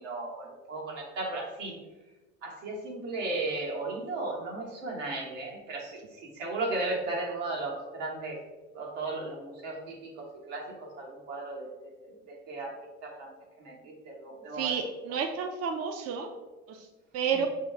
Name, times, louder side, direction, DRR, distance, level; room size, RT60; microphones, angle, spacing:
voice 1, 0.0-1.8 2.4-8.4 8.7-11.7 12.0-13.3 13.6-14.9 17.3-17.5, right 2 dB, 75° right, -1 dB, 1.1 m, -36 dB
voice 2, 14.6-16.3 16.7-16.9 17.1-17.5, right 6 dB, 40° right, 5 dB, 0.5 m, -30 dB
5.1 x 2.3 x 3.3 m, 1.2 s
hypercardioid pair, 65°, 37 cm